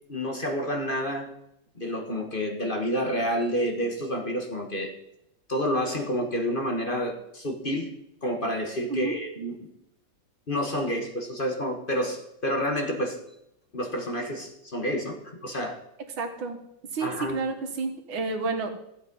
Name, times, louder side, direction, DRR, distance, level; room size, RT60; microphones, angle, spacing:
voice 1, 0.1-1.3 1.7-4.9 5.5-7.9 8.2-9.7 10.5-13.2 13.7-15.8 17.0-17.4, equal, 30° left, 3 dB, 1.5 m, -29 dB
voice 2, 16.2-16.6 16.9-18.7, right 4 dB, 90° right, 5 dB, 2.4 m, -30 dB
14.5 x 8.5 x 5.4 m, 0.79 s
omnidirectional pair, 2.1 m